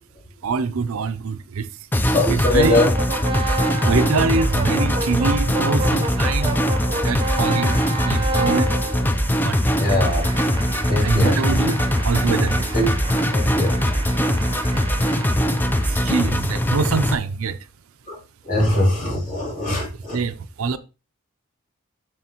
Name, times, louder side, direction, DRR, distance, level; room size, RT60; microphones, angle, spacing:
voice 1, 0.4-1.7 2.3-2.8 3.8-6.6 7.0-8.7 9.4-9.6 11.0-12.7 15.9-17.6 20.1-20.8, right 4 dB, 75° right, 0.5 m, -24 dB
sound 1, 1.9-17.1, equal, 10° left, 0.4 m, -21 dB
voice 2, 2.1-2.9 9.8-10.3 10.9-11.4 12.7-12.9 13.3-13.8 18.1-18.2 18.4-20.2, left 1 dB, 40° left, 2.8 m, -21 dB
sound 2, 2.6-16.7, right 2 dB, 25° right, 0.8 m, -31 dB
7.5 x 6.3 x 2.9 m
head